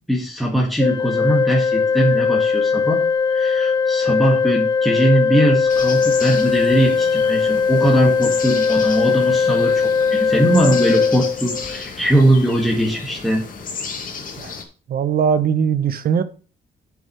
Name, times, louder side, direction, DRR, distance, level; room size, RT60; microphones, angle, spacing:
voice 1, 0.1-3.0 3.3-13.5, right 1 dB, ahead, 1.8 m, -20 dB
Organ, 0.8-11.8, left 5 dB, 25° left, 0.4 m, -19 dB
sound 1, 5.7-14.6, left 5 dB, 55° left, 2.0 m, -33 dB
voice 2, 14.9-16.2, right 7 dB, 60° right, 1.0 m, -20 dB
7.2 x 6.2 x 5.8 m
cardioid pair, 100°, 17 cm